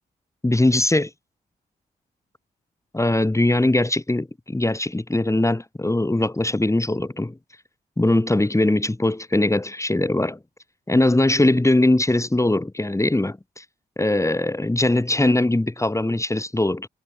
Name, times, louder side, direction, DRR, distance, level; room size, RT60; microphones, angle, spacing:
voice 1, 0.4-1.1 2.9-7.4 8.0-10.4 10.9-13.6 14.0-16.9, left 2 dB, 15° left, 5.0 m, -21 dB
supercardioid pair, 55°, 17 cm